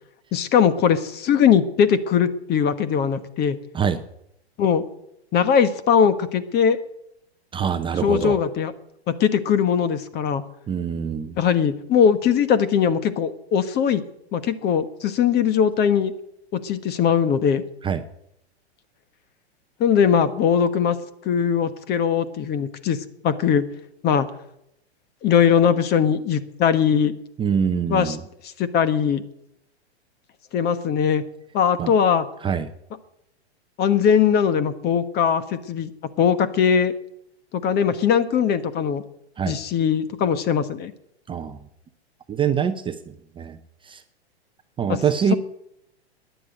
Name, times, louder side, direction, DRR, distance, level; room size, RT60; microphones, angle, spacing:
voice 1, 0.3-3.6 4.6-4.8 5.3-6.8 8.0-8.7 9.1-10.4 11.4-14.0 14.3-16.1 16.5-17.6 19.8-21.0 21.2-23.0 23.2-23.6 24.0-24.3 25.2-27.1 27.9-28.2 28.6-29.2 30.5-31.2 31.5-32.3 33.8-35.9 36.2-36.9 37.5-39.0 39.5-40.9 44.9-45.0, left 7 dB, 30° left, 13 dB, 1.3 m, -20 dB
voice 2, 7.5-8.4 10.7-11.4 17.8-18.0 27.4-28.2 31.8-31.9 32.4-32.7 39.4-39.6 41.3-41.6 42.3-43.6 43.8-44.0 44.8-45.3, right 7 dB, 15° right, 8 dB, 0.7 m, -24 dB
13.5 x 10.5 x 9.2 m, 0.79 s
hypercardioid pair, 120°, 33 cm